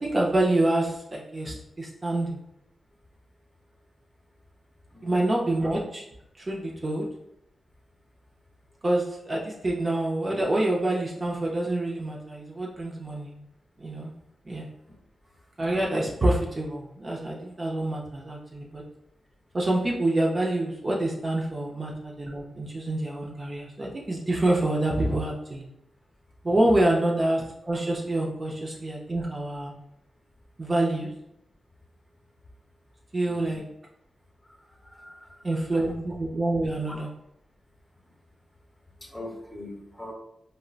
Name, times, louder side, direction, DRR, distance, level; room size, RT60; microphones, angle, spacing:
voice 1, 0.0-2.4 5.0-6.0 6.4-7.0 8.8-13.4 13.8-14.1 14.5-14.7 15.6-18.8 19.5-25.6 26.4-29.7 30.6-31.1 33.1-33.6 35.4-37.1, right 1 dB, 40° right, -2 dB, 0.6 m, -27 dB
voice 2, 4.9-5.2 33.3-33.6 34.8-35.4 39.0-40.1, left 1 dB, 15° left, -1 dB, 1.0 m, -42 dB
3.6 x 2.1 x 2.4 m, 0.79 s
cardioid pair, 55°, 0 cm